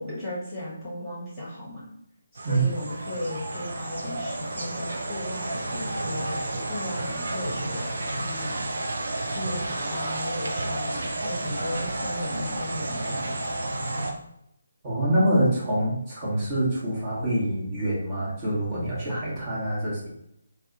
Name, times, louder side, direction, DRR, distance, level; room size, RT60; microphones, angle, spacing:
voice 1, 0.0-1.8 2.3-8.6 9.3-13.4, left 1 dB, 5° left, -11 dB, 1.2 m, -36 dB
sound 1, 2.4-14.1, right 2 dB, 55° right, 0.5 m, -31 dB
voice 2, 14.8-20.1, right 1 dB, 25° right, -8 dB, 1.2 m, -25 dB
2.6 x 2.3 x 3.9 m, 0.75 s
figure-of-eight pair, 145°, 0 cm